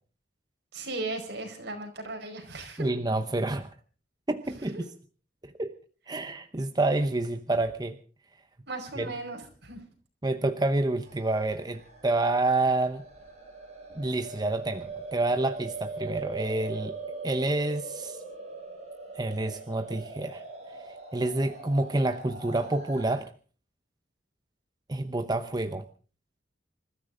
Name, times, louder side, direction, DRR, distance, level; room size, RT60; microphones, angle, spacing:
voice 1, 0.7-2.9 4.7-4.8 8.7-9.8, right 2 dB, 65° right, 4 dB, 5.1 m, -37 dB
voice 2, 2.8-3.7 4.3-4.9 5.4-5.8 6.1-8.0 9.0-9.1 10.2-13.0 13.9-17.0 17.2-18.2 19.1-20.4 21.1-23.3 24.9-25.9, right 2 dB, 20° right, 8 dB, 0.8 m, -28 dB
sound 1, 11.0-23.2, right 3 dB, 35° right, 6.7 m, -41 dB
27.0 x 13.5 x 3.8 m, 0.39 s
head